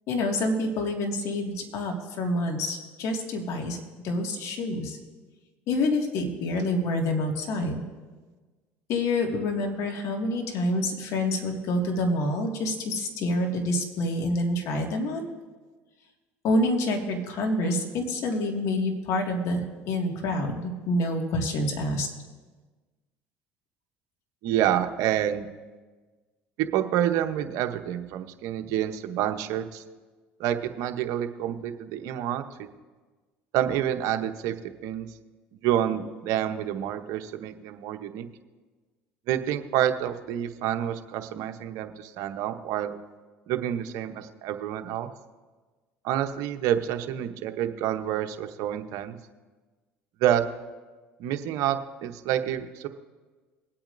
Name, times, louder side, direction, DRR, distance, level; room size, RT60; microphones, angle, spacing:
voice 1, 0.1-3.8 4.0-5.0 5.7-7.8 8.9-15.3 16.4-22.1, left 1 dB, 65° left, 2 dB, 2.0 m, -27 dB
voice 2, 24.4-25.5 26.6-29.8 30.4-32.4 33.5-34.5 34.8-35.1 35.6-38.3 39.3-42.9 43.5-45.1 46.0-49.2 50.2-50.4 51.2-52.9, right 11 dB, 70° right, 8 dB, 0.9 m, -28 dB
21.5 x 8.7 x 2.6 m, 1.3 s
supercardioid pair, 80°, 6 cm